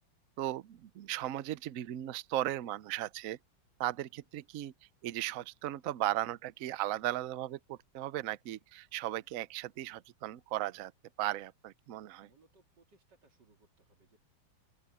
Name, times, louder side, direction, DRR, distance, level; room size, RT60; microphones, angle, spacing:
voice 1, 0.4-3.4 3.8-4.7 5.0-10.9 11.2-12.3, right 14 dB, 75° right, 0.7 m, -36 dB
voice 2, 12.2-14.2, right 3 dB, 60° right, 3.5 m, -66 dB
open air
omnidirectional pair, 2.1 m